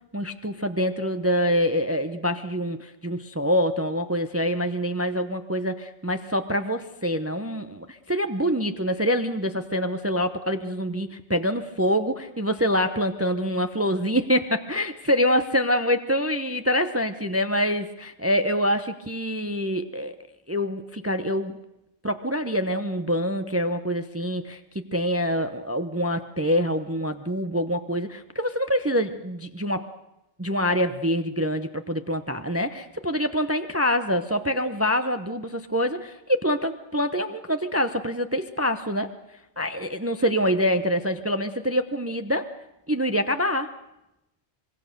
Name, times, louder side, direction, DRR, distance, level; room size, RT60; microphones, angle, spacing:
voice 1, 0.1-20.2 20.5-21.6 22.0-29.9 30.4-39.1 39.6-42.5 42.9-43.7, equal, 15° right, 8 dB, 0.7 m, -25 dB
25.5 x 21.5 x 6.7 m, 0.89 s
omnidirectional pair, 1.2 m